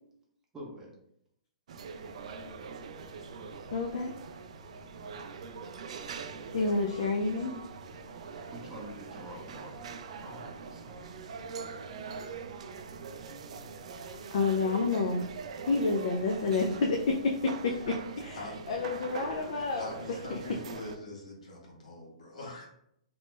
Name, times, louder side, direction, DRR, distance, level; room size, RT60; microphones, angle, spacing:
voice 1, 0.5-0.9 8.5-11.0, equal, 10° right, -2 dB, 0.6 m, -46 dB
sound 1, 1.7-21.0, right 5 dB, 65° right, 0.3 m, -43 dB
voice 2, 3.7-4.1 6.5-7.5 14.3-15.3 15.6-17.8 18.2-18.4 18.7-19.9 20.3-20.4, left 3 dB, 60° left, 1 dB, 0.4 m, -29 dB
voice 3, 18.9-22.7, left 2 dB, 80° left, -2 dB, 1.3 m, -44 dB
2.9 x 2.1 x 3.2 m, 0.74 s
hypercardioid pair, 155°, 4 cm